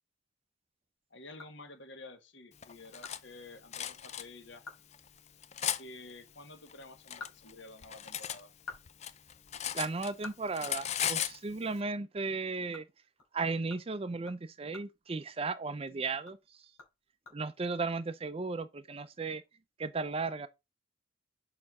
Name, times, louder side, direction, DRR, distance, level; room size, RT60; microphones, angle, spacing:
sound 1, 1.0-2.1 2.5-2.6 3.0-3.2 3.5-3.6 4.0-4.1 4.5-4.9 5.2-5.3 6.8-8.1 8.4-11.4 11.7-11.8 12.2-15.8 16.1-17.8, left 4 dB, 90° left, 3.7 m, -52 dB
voice 1, 1.1-4.6 5.8-8.5, left 2 dB, 60° left, 1.4 m, -50 dB
Cutlery silverware, 2.6-3.2 3.7-4.2 4.9-5.8 6.7-8.4 8.7-10.3 10.5-11.4, left 10 dB, 35° left, 0.5 m, -36 dB
voice 2, 9.7-12.8 13.3-16.4 17.3-19.4 19.8-20.5, right 3 dB, 30° right, 0.4 m, -35 dB
5.7 x 4.4 x 4.7 m
head